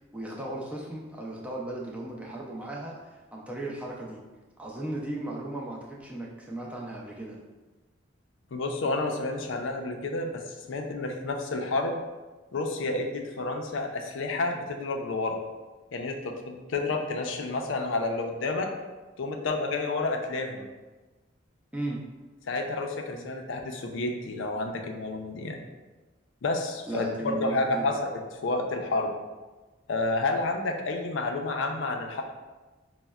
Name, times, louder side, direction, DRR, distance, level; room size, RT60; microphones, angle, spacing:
voice 1, 0.1-4.2 4.6-7.4 21.7-22.0 23.1-23.2 26.9-27.9, right 1 dB, 5° right, -3 dB, 0.4 m, -36 dB
voice 2, 8.5-12.0 12.5-15.4 15.9-18.7 19.2-20.6 22.5-25.6 26.4-28.0 28.4-29.1 29.9-32.2, left 2 dB, 75° left, 3 dB, 0.4 m, -30 dB
5.1 x 2.0 x 2.3 m, 1.2 s
head